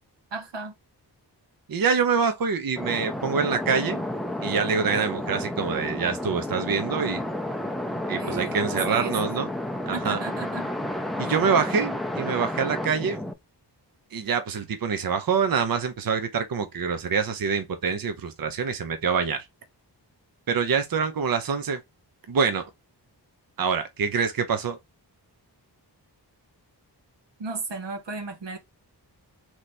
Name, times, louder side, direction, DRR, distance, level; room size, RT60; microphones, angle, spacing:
voice 1, 0.3-0.7 8.2-9.1 9.9-10.7 27.4-28.6, right 3 dB, 85° right, 1.1 m, -34 dB
voice 2, 1.7-4.0 4.4-7.2 8.1-9.5 9.9-10.2 11.2-13.2 14.1-19.4 20.5-21.8 22.3-22.6 23.6-24.8, right 6 dB, 55° right, 0.7 m, -25 dB
sound 1, 2.8-13.3, left 1 dB, ahead, 0.4 m, -31 dB
3.3 x 3.0 x 4.0 m
wide cardioid pair, 105°, 42 cm